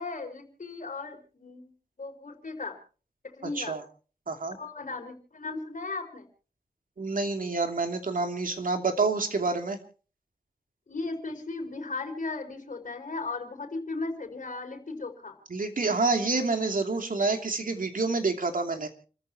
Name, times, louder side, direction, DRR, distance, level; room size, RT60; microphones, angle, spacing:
voice 1, 0.0-1.7 2.0-2.8 3.2-3.8 4.5-6.3 10.9-15.4, left 3 dB, 60° left, 3 dB, 4.5 m, -36 dB
voice 2, 4.3-4.6 7.0-9.8 15.5-18.9, right 3 dB, 65° right, 5 dB, 2.9 m, -28 dB
29.5 x 14.5 x 3.0 m, 0.39 s
wide cardioid pair, 100°, 15 cm